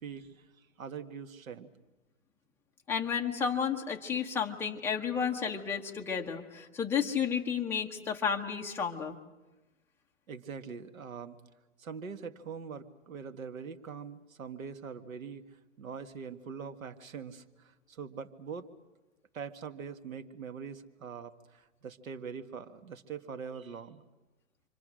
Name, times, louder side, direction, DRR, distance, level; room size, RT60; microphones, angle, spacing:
voice 1, 0.0-0.5 0.8-1.7 5.0-5.1 10.3-11.4 11.8-18.6 19.3-24.0, right 6 dB, 85° right, 9 dB, 1.8 m, -43 dB
voice 2, 2.9-9.2, left 7 dB, 5° left, 0 dB, 0.9 m, -32 dB
28.5 x 25.0 x 6.4 m, 1.1 s
hypercardioid pair, 155°, 40 cm